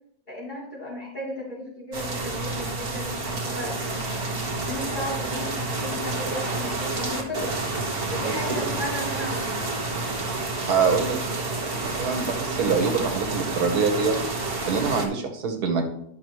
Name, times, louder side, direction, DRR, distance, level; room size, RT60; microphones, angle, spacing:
voice 1, 0.3-4.2 4.6-7.6 8.1-9.7, left 1 dB, 30° left, -7 dB, 3.5 m, -35 dB
sound 1, 1.9-15.1, right 3 dB, 40° right, 1.7 m, -29 dB
voice 2, 10.7-11.2 11.8-14.2 14.7-15.8, right 5 dB, 90° right, 4 dB, 1.7 m, -24 dB
11.5 x 6.2 x 3.1 m, 0.71 s
omnidirectional pair, 1.6 m